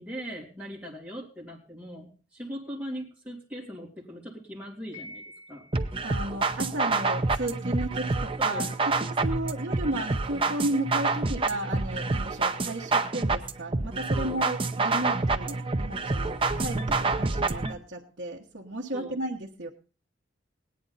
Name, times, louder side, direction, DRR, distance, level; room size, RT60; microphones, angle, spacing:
voice 1, 0.0-5.2 5.5-5.7 8.4-8.7 9.3-9.4 14.1-14.4 18.9-19.2, equal, 5° right, -5 dB, 3.0 m, -40 dB
Piano, 4.9-6.1, left 1 dB, 25° left, 5.9 m, -46 dB
sound 1, 5.7-17.7, right 3 dB, 30° right, 0.7 m, -28 dB
voice 2, 6.0-19.7, right 1 dB, 60° right, -4 dB, 1.3 m, -34 dB
18.0 x 9.8 x 4.0 m, 0.36 s
head